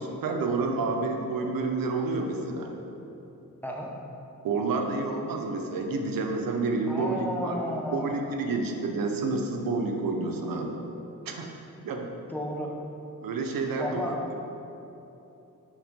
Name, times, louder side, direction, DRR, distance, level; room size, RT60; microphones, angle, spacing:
voice 1, 0.0-2.7 4.4-7.6 7.9-10.8 11.2-11.5 11.8-12.1 13.2-14.2, right 3 dB, 85° right, 3 dB, 0.7 m, -29 dB
voice 2, 3.6-3.9 6.9-8.2 12.3-12.7 13.8-14.1, left 1 dB, 5° left, -2 dB, 0.8 m, -32 dB
6.3 x 3.5 x 5.1 m, 2.9 s
cardioid pair, 90°, 33 cm